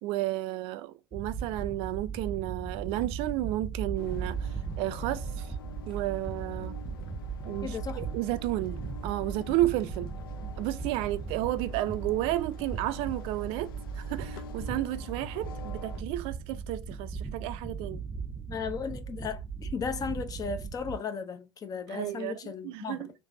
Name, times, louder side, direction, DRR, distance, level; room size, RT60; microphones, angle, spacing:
voice 1, 0.0-5.5 5.9-6.8 7.4-10.1 10.6-18.0 21.9-23.1, right 15 dB, 55° right, 0.4 m, -32 dB
sound 1, 1.1-21.0, right 5 dB, 10° right, 0.7 m, -38 dB
sound 2, 4.0-16.0, left 7 dB, 75° left, 0.5 m, -47 dB
voice 2, 7.6-8.0 18.5-23.1, left 5 dB, 30° left, 0.6 m, -35 dB
3.3 x 3.2 x 2.6 m
hypercardioid pair, 75°, 12 cm